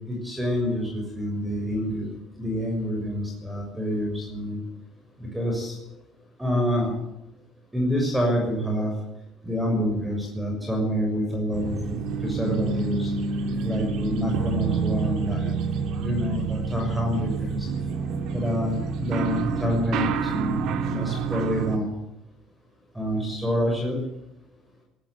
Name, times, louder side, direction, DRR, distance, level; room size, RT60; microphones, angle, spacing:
voice 1, 0.1-2.1 2.4-4.6 5.2-5.8 6.4-6.9 7.7-8.9 9.4-11.8 12.2-13.1 13.6-15.5 16.0-17.7 18.3-21.9 22.9-24.0, equal, 5° right, 2 dB, 6.5 m, -27 dB
sound 1, 11.5-21.8, right 5 dB, 65° right, 2.5 m, -28 dB
20.0 x 18.5 x 9.6 m, 0.85 s
cardioid pair, 155°, 0 cm